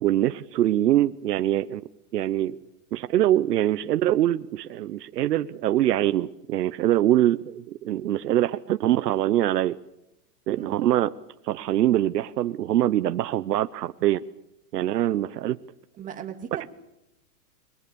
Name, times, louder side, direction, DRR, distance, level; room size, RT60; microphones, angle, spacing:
voice 1, 0.0-1.8 2.1-2.6 2.9-9.8 10.5-11.1 11.4-14.2 14.7-15.6, right 13 dB, 80° right, 1.0 m, -23 dB
voice 2, 16.0-16.7, right 9 dB, 15° right, 2.1 m, -38 dB
28.5 x 22.0 x 7.0 m
supercardioid pair, 160°, 47 cm